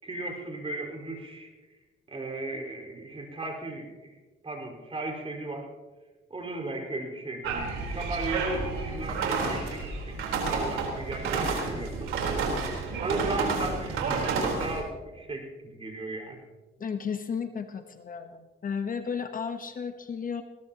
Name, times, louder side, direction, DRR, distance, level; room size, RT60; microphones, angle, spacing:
voice 1, 0.0-1.5 2.1-4.2 4.4-5.7 6.3-12.1 13.0-16.4, right 2 dB, 30° right, 1 dB, 5.1 m, -36 dB
sound 1, 7.4-14.8, right 4 dB, 90° right, 4.1 m, -30 dB
voice 2, 16.8-20.4, left 6 dB, 45° left, 7 dB, 1.2 m, -33 dB
21.5 x 18.5 x 3.0 m, 1.3 s
cardioid pair, 90°, 20 cm